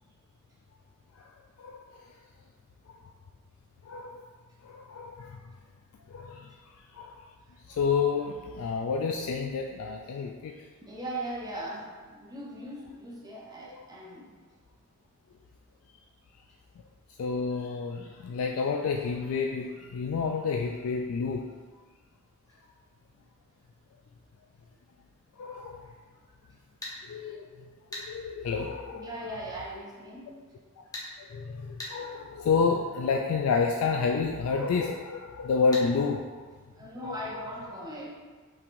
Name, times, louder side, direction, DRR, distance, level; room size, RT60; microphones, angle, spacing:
voice 1, 1.6-2.1 3.8-4.2 4.6-5.4 6.1-6.5 6.9-7.2 7.7-10.6 13.7-13.8 17.2-21.5 25.4-25.9 27.1-27.6 27.9-29.1 30.8-30.9 31.2-36.5 37.0-37.4 37.7-37.8, left 5 dB, 75° left, 2 dB, 0.3 m, -30 dB
voice 2, 10.8-14.4 28.9-30.4 36.6-38.1, right 1 dB, 20° right, -4 dB, 0.7 m, -39 dB
sound 1, 26.8-27.0 27.9-28.1 30.9-31.1 31.8-32.0 35.7-35.9, left 1 dB, 15° left, 0.9 m, -37 dB
5.7 x 3.3 x 2.5 m, 1.5 s
head